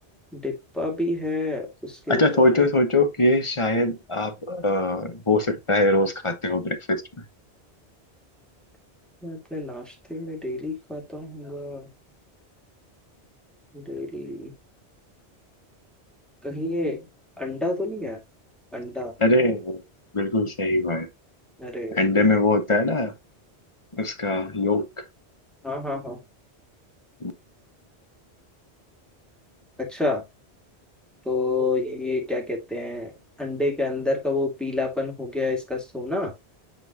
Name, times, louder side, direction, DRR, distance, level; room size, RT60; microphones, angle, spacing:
voice 1, 0.3-2.6 9.2-11.9 13.7-14.5 16.4-17.0 17.4-18.2 18.7-19.1 21.6-22.0 25.6-26.2 29.8-30.2 31.3-33.1 33.4-36.3, left 2 dB, ahead, 2.0 m, -29 dB
voice 2, 2.1-7.0 19.2-19.8 20.1-21.1 21.9-23.1 23.9-24.9 27.2-27.3, left 2 dB, 30° left, 1.0 m, -22 dB
9.0 x 3.8 x 2.8 m
omnidirectional pair, 1.1 m